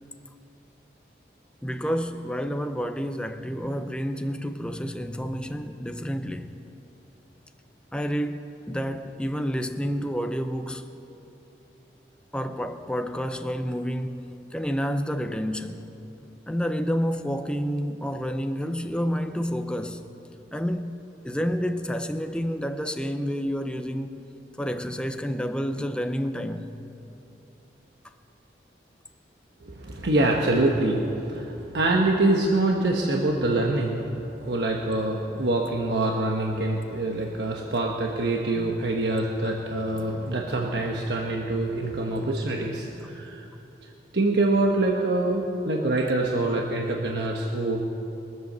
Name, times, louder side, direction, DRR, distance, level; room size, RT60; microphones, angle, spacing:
voice 1, 1.6-6.5 7.9-8.4 8.7-10.9 12.3-15.9 16.5-20.0 20.5-21.0 21.2-24.1 24.6-26.7 38.6-38.8, equal, 5° left, 0.5 m, -29 dB
voice 2, 29.6-34.0 34.4-43.5 44.1-47.8, right 2 dB, 80° right, 1.1 m, -25 dB
23.0 x 7.9 x 6.7 m
head